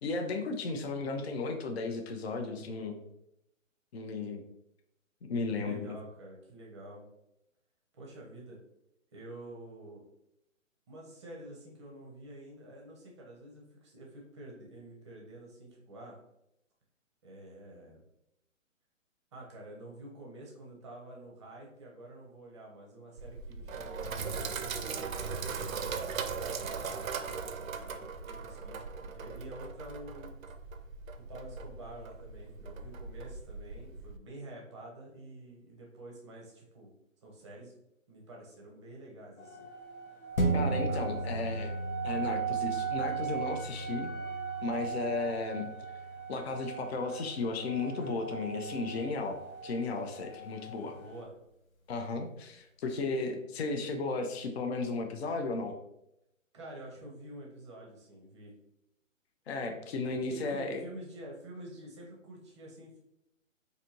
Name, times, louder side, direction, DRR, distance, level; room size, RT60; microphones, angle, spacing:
voice 1, 0.0-3.0 3.9-4.4 5.2-6.0 40.5-41.7 42.0-44.1 44.6-45.7 46.3-50.9 51.9-55.8 59.5-60.8, left 3 dB, 50° left, 4 dB, 0.6 m, -34 dB
voice 2, 5.5-7.1 7.9-8.6 9.1-10.0 10.9-16.2 17.2-18.0 19.3-30.3 31.3-36.9 37.2-37.7 38.1-39.7 40.7-41.4 42.1-42.4 51.0-51.3 56.5-58.5 60.2-63.0, right 1 dB, 20° right, -1 dB, 0.6 m, -48 dB
Sink (filling or washing), 23.2-34.2, right 5 dB, 80° right, 0.6 m, -39 dB
sound 1, 39.4-51.2, right 9 dB, 25° left, 1.0 m, -39 dB
sound 2, 40.4-49.2 49.6-49.7, right 2 dB, 90° left, 0.9 m, -37 dB
4.1 x 2.6 x 2.8 m, 0.83 s
hypercardioid pair, 145°, 40 cm